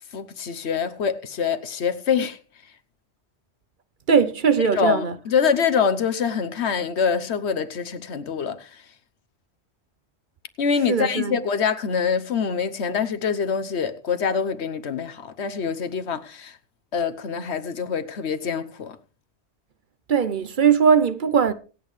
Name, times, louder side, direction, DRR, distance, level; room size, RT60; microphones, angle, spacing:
voice 1, 0.1-2.4 4.7-8.9 10.6-16.6 16.9-19.0, left 6 dB, 80° left, 1.2 m, -25 dB
voice 2, 4.1-5.1 10.9-11.3 20.1-21.5, right 6 dB, 50° right, 0.9 m, -19 dB
25.0 x 8.5 x 3.2 m
omnidirectional pair, 1.1 m